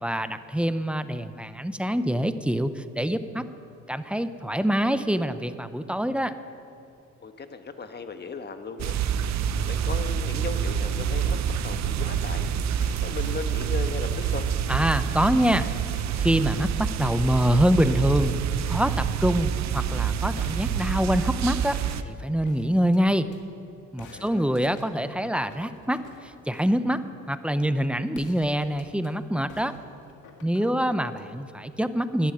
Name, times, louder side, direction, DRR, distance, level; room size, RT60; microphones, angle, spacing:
voice 1, 0.0-3.5 3.9-6.3 14.7-15.7 16.2-18.4 18.7-21.8 22.0-23.3 23.9-27.0 27.3-29.7 30.4-32.3, equal, 5° right, 11 dB, 0.7 m, -25 dB
voice 2, 7.2-8.9 9.6-12.5 13.0-14.5 24.1-24.5 30.6-30.9, left 4 dB, 35° left, 8 dB, 1.2 m, -37 dB
sound 1, 8.8-22.0, right 8 dB, 65° right, 0.7 m, -27 dB
sound 2, 12.8-16.6 17.0-18.2 20.4-23.4 24.0-26.8 28.1-29.1 29.5-31.3, left 4 dB, 80° left, 1.9 m, -51 dB
12.5 x 11.0 x 8.6 m, 2.7 s
cardioid pair, 90°, 30 cm